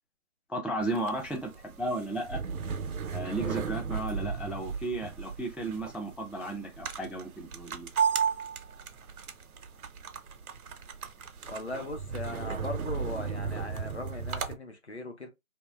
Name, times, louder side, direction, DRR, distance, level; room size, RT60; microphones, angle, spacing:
voice 1, 0.5-2.4 3.1-7.9, right 2 dB, 5° right, 0.3 m, -34 dB
sound 1, 0.8-14.5, right 6 dB, 90° right, 0.6 m, -35 dB
voice 2, 11.5-15.3, left 2 dB, 50° left, 0.6 m, -39 dB
2.7 x 2.1 x 2.3 m
figure-of-eight pair, 175°, 42 cm